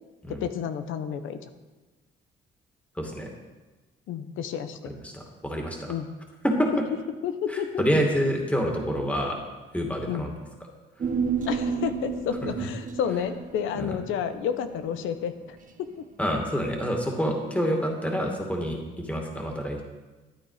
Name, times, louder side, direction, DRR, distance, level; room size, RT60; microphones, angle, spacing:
voice 1, 0.3-1.5 4.1-4.9 5.9-6.1 7.2-7.8 10.0-10.3 11.5-16.1, left 8 dB, 85° left, 10 dB, 1.0 m, -31 dB
voice 2, 3.0-3.3 4.9-5.9 6.4-6.8 7.5-9.4 9.7-10.3 12.6-12.7 13.7-13.9 16.2-19.8, equal, 5° left, 1 dB, 2.4 m, -27 dB
Human voice, 11.0-15.6 15.9-16.0, right 6 dB, 40° right, 1.3 m, -31 dB
12.5 x 9.3 x 5.0 m, 1.2 s
cardioid pair, 90°, 20 cm